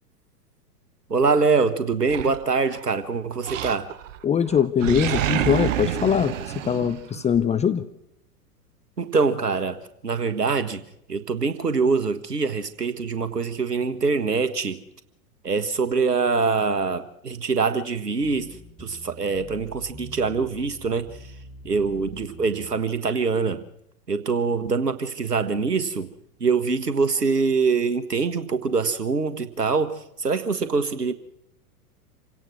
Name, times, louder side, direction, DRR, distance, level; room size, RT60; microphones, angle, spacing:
voice 1, 1.1-3.9 9.0-10.8 11.1-14.8 15.4-21.2 21.6-23.6 24.1-26.1 26.4-31.1, right 4 dB, 85° right, 1.7 m, -24 dB
Animal, 2.1-2.9 3.4-4.2 4.5-7.4, right 11 dB, 55° right, 1.4 m, -28 dB
voice 2, 4.2-7.8, left 8 dB, 15° left, 0.8 m, -22 dB
sound 1, 18.2-22.8, right 1 dB, 10° right, 3.2 m, -44 dB
27.5 x 17.0 x 6.2 m
figure-of-eight pair, 95°, 46 cm